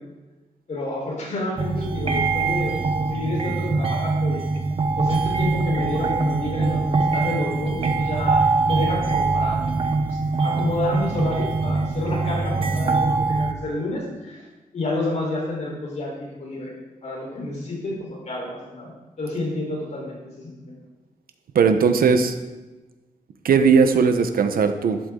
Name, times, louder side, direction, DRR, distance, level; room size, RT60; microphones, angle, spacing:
voice 1, 0.7-4.5 5.0-9.6 10.1-14.5 14.7-16.7 17.0-18.9 19.2-20.8, left 2 dB, 50° left, -2 dB, 4.3 m, -30 dB
sound 1, 1.6-13.5, right 3 dB, 40° right, 1.0 m, -23 dB
voice 2, 21.5-22.3 23.4-25.0, right 5 dB, 80° right, 7 dB, 1.1 m, -18 dB
12.0 x 11.0 x 3.9 m, 1.1 s
wide cardioid pair, 180°, 15 cm